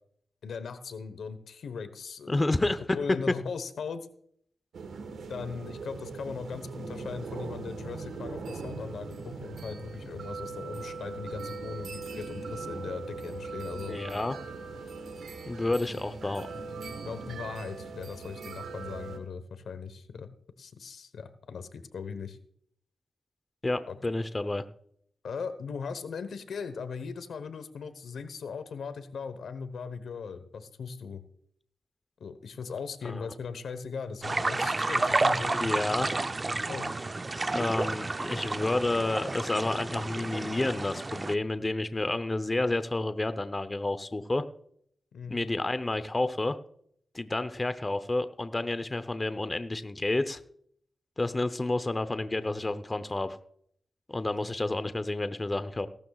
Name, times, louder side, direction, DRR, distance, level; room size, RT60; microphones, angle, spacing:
voice 1, 0.4-4.1 5.3-14.0 17.1-20.3 20.6-22.4 23.9-24.0 25.2-31.2 32.2-36.1 36.5-36.9 45.1-45.4, left 5 dB, 85° left, 11 dB, 1.1 m, -39 dB
voice 2, 2.3-3.0 13.8-14.4 15.5-16.5 23.6-24.6 33.0-33.3 35.5-36.1 37.5-44.4 45.3-46.6 47.1-50.4 51.2-53.4 54.1-55.9, left 2 dB, 30° left, 12 dB, 0.8 m, -30 dB
sound 1, 4.7-19.2, right 4 dB, 90° right, 1.4 m, -40 dB
sound 2, 34.2-41.3, right 2 dB, 35° right, 0.6 m, -30 dB
17.5 x 12.5 x 2.4 m, 0.65 s
cardioid pair, 60°, 0 cm